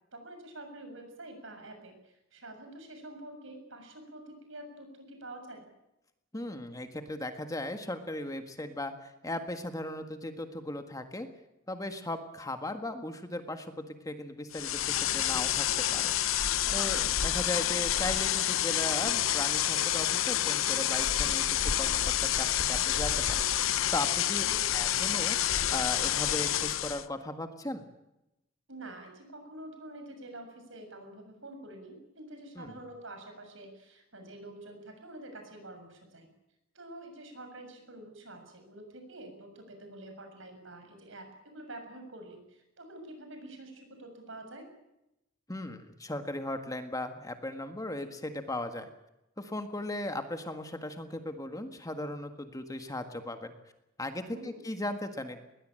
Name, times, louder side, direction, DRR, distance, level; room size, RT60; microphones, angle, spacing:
voice 1, 0.1-5.7 16.6-17.1 24.4-24.9 28.7-36.3 36.7-44.7 54.3-54.6, right 1 dB, 70° right, 6 dB, 7.2 m, -47 dB
voice 2, 6.3-11.3 11.7-16.1 16.7-23.5 23.9-24.4 24.7-25.4 25.7-27.8 32.6-32.8 45.5-48.9 49.4-53.5 54.0-55.4, left 1 dB, 15° left, 7 dB, 1.7 m, -37 dB
sound 1, 14.5-27.1, left 11 dB, 80° left, 0.9 m, -28 dB
21.5 x 20.0 x 9.0 m, 0.90 s
head